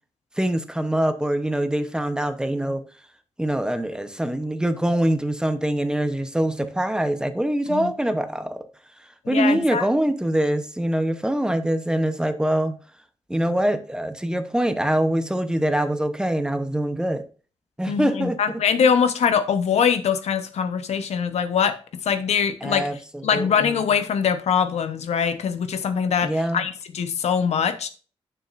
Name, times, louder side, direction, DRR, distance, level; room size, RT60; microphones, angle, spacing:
voice 1, 0.4-2.8 3.4-8.6 9.3-12.8 13.3-17.3 17.8-18.4 22.6-22.9 23.3-23.7 26.2-26.6, right 1 dB, 5° right, 0.8 m, -24 dB
voice 2, 9.2-9.9 17.9-27.9, left 7 dB, 85° left, 1.0 m, -23 dB
9.4 x 6.9 x 2.5 m
wide cardioid pair, 130°, 11 cm